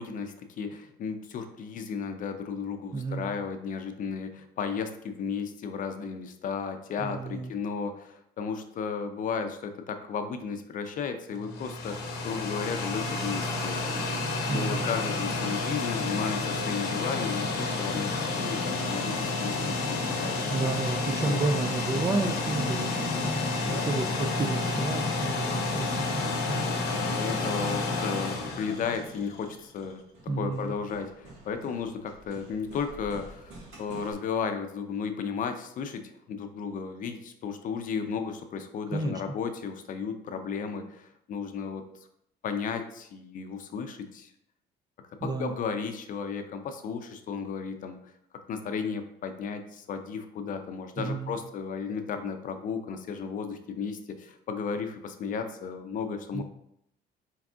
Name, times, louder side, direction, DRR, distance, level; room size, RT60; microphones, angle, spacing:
voice 1, 0.0-13.9 14.5-20.5 21.2-21.4 23.6-24.0 26.9-30.0 30.4-41.8 42.4-44.3 45.2-48.1 48.5-56.4, left 6 dB, 50° left, 7 dB, 0.5 m, -34 dB
voice 2, 2.9-3.3 7.0-7.5 14.5-14.9 20.5-23.4 23.7-27.0 30.3-30.7 38.9-39.2 45.2-45.5 51.0-51.3 56.3-56.4, right 3 dB, 25° right, 6 dB, 0.3 m, -32 dB
sound 1, 11.3-29.4, left 3 dB, 80° left, 0.8 m, -30 dB
Hammer, 28.7-34.1, right 2 dB, 80° right, 1.6 m, -51 dB
4.6 x 3.6 x 2.3 m, 0.75 s
cardioid pair, 110°, 17 cm